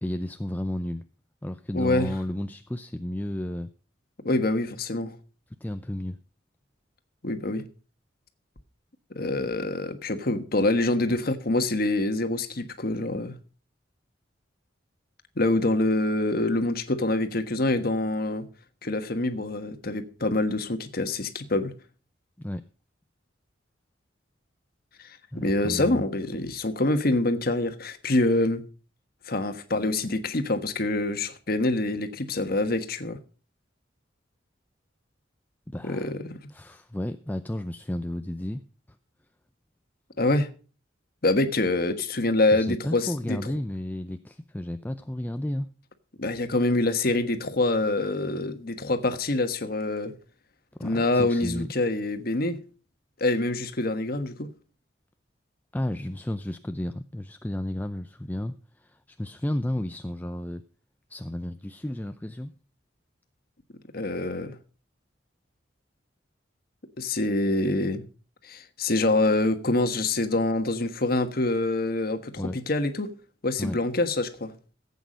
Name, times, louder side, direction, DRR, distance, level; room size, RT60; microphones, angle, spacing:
voice 1, 0.0-1.0 1.4-3.7 5.6-6.2 22.4-22.6 25.3-26.0 35.7-36.1 36.5-38.6 42.5-45.8 50.8-51.7 53.3-53.4 55.7-60.6 61.1-62.5 72.4-72.6 73.6-73.8, left 1 dB, 10° left, 0.5 m, -32 dB
voice 2, 1.7-2.1 4.2-5.1 7.2-7.6 9.1-13.4 15.4-18.5 18.8-21.7 25.3-28.6 29.3-33.2 35.8-36.4 40.2-40.5 41.2-43.4 46.2-50.1 50.8-52.6 53.2-54.5 63.9-64.6 67.0-68.0 68.4-73.1 73.4-74.5, left 2 dB, 55° left, 1.4 m, -25 dB
15.5 x 8.3 x 5.1 m
head